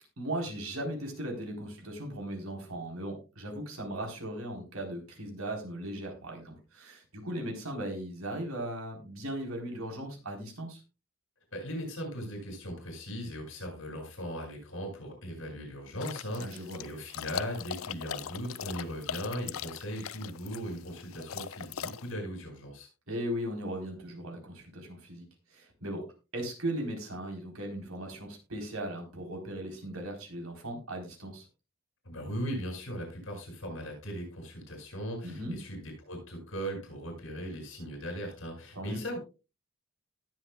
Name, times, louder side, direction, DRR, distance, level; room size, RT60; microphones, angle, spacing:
voice 1, 0.2-10.8 16.4-16.8 23.1-25.2 25.5-26.0 26.3-31.5 35.2-35.6 38.8-39.0, right 1 dB, 90° right, 2 dB, 4.0 m, -37 dB
voice 2, 11.5-22.9 32.0-39.2, equal, 65° left, 2 dB, 7.9 m, -38 dB
sound 1, 16.0-22.1, left 8 dB, 80° left, 0.5 m, -40 dB
19.0 x 8.1 x 2.3 m, 0.30 s
head